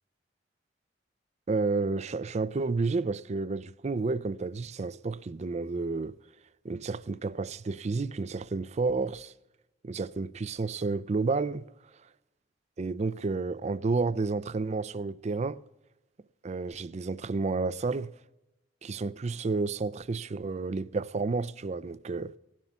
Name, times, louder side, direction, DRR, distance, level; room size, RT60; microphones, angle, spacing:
voice 1, 1.5-6.2 6.6-9.3 9.8-11.7 12.8-15.6 16.4-18.1 18.8-22.3, right 3 dB, 40° right, 0.4 m, -31 dB
17.5 x 7.5 x 6.8 m
head